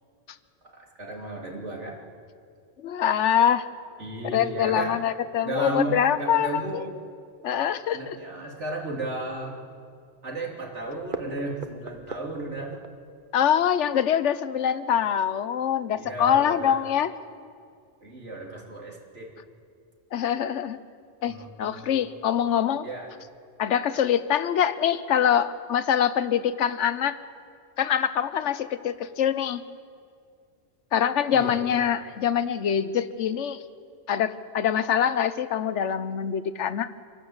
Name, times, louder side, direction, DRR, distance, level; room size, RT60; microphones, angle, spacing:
voice 1, 0.7-2.0 4.0-5.0 5.4-6.9 7.9-9.6 10.2-12.8 15.9-16.8 18.0-19.3 21.3-21.9 22.8-23.1 31.3-31.6, right 2 dB, 85° right, -1 dB, 3.4 m, -34 dB
voice 2, 2.8-3.7 4.3-6.8 7.4-8.2 13.3-17.1 20.1-20.8 21.2-22.9 23.6-27.2 27.8-29.6 30.9-33.6 34.1-36.9, left 9 dB, 85° left, 14 dB, 1.1 m, -24 dB
sound 1, 10.8-15.4 15.8-15.9 16.3-16.4 16.6-16.8, right 5 dB, 50° right, 1.1 m, -39 dB
26.5 x 12.0 x 8.0 m, 2.3 s
omnidirectional pair, 1.2 m